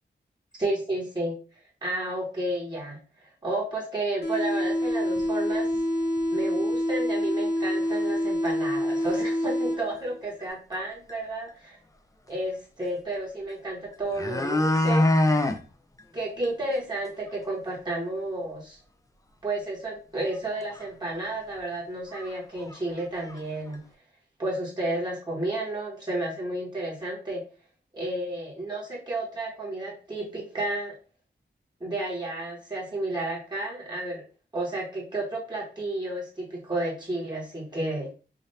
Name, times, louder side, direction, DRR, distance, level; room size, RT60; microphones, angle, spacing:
voice 1, 0.6-1.3 1.8-5.7 6.3-11.8 12.3-15.1 16.1-18.8 19.4-23.8 24.4-27.4 27.9-30.9 31.8-34.2 34.5-38.1, right 2 dB, 20° right, -5 dB, 1.4 m, -32 dB
sound 1, 4.2-10.2, equal, 60° left, 1.0 m, -27 dB
sound 2, 5.2-5.3 5.7-5.8 6.2-6.3 7.2-7.3 7.9-8.2 8.5-8.6 8.9-9.3 10.7-10.8 11.1-11.2 13.5-13.6 13.9-15.6 16.0-16.1 16.4-16.5 16.9-17.0 17.3-17.4 20.3-20.4 20.7-20.8 21.6-21.7 22.1-22.3 22.6-23.4 23.7-23.8, left 1 dB, 15° left, 0.5 m, -25 dB
5.0 x 2.6 x 2.8 m, 0.35 s
wide cardioid pair, 105°, 20 cm